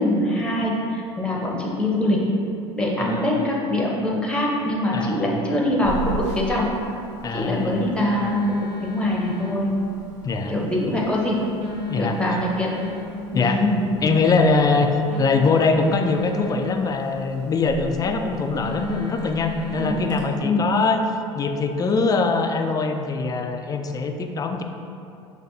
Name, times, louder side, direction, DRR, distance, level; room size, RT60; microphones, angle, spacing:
voice 1, 0.0-2.2 2.8-6.7 7.3-9.7 10.5-11.4 12.0-12.7 13.3-14.1 19.8-20.1 20.4-20.6, left 1 dB, 5° left, -3 dB, 0.9 m, -23 dB
voice 2, 3.0-3.5 4.9-5.3 7.2-7.9 10.2-10.5 11.9-12.2 13.3-13.6 14.0-14.9 15.2-21.0 21.3-24.6, left 4 dB, 25° left, 5 dB, 0.4 m, -22 dB
Telephone, 5.8-20.2, left 3 dB, 85° right, 0.8 m, -35 dB
6.1 x 2.6 x 2.7 m, 2.6 s
hypercardioid pair, 75°, 15 cm